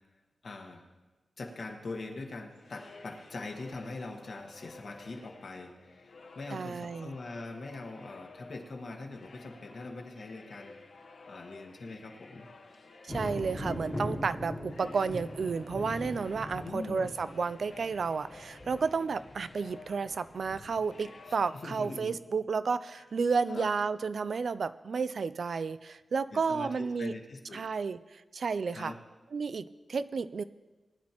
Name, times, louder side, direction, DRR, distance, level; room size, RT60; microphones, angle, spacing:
voice 1, 0.4-0.8 1.4-10.7 11.3-12.5 16.6-17.1 21.3-22.2 22.9-23.0 23.4-23.7 26.3-27.6 28.7-29.0, left 3 dB, 50° left, 2 dB, 1.4 m, -42 dB
sound 1, 2.5-21.9, left 3 dB, 70° left, 1.3 m, -53 dB
voice 2, 6.5-7.2 13.0-27.1 27.5-28.9 29.3-30.4, right 5 dB, 55° right, 14 dB, 0.3 m, -32 dB
sound 2, 13.1-21.5, left 1 dB, 15° left, 1.4 m, -41 dB
19.5 x 10.5 x 3.0 m, 1.2 s
wide cardioid pair, 175°, 0 cm